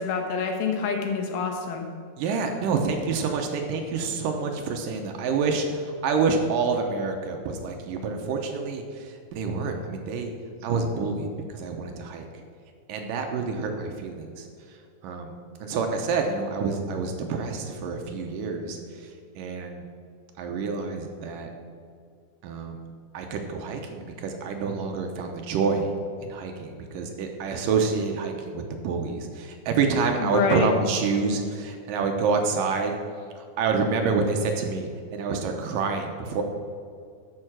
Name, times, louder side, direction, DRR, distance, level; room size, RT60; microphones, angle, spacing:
voice 1, 0.0-1.9 30.2-30.7, left 5 dB, 85° left, 3 dB, 3.2 m, -27 dB
voice 2, 2.2-10.3 10.6-12.3 12.9-14.5 15.0-15.3 15.6-19.1 19.4-19.8 20.4-21.5 22.4-22.8 23.1-25.9 26.2-32.9 33.4-36.4, right 4 dB, 75° right, 4 dB, 2.2 m, -27 dB
12.5 x 5.6 x 6.1 m, 2.3 s
omnidirectional pair, 4.3 m